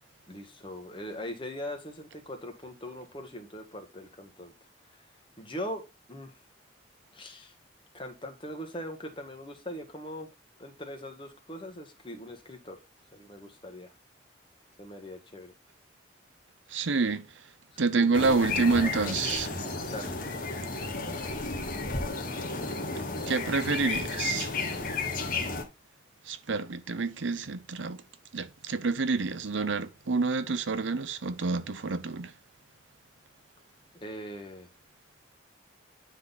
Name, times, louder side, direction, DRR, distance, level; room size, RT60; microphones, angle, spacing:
voice 1, 0.3-4.5 4.9-5.0 5.4-6.4 7.1-7.5 7.9-10.3 10.6-12.8 13.1-13.9 14.8-15.5 17.9-19.4 19.9-20.5 34.0-34.7, equal, 25° left, 1.5 m, -41 dB
voice 2, 16.7-17.3 17.8-19.5 23.3-24.5 26.3-28.0 28.3-32.3, right 4 dB, 80° right, 0.7 m, -28 dB
sound 1, 18.1-25.6, left 3 dB, 45° left, 1.4 m, -33 dB
9.9 x 3.9 x 4.0 m
head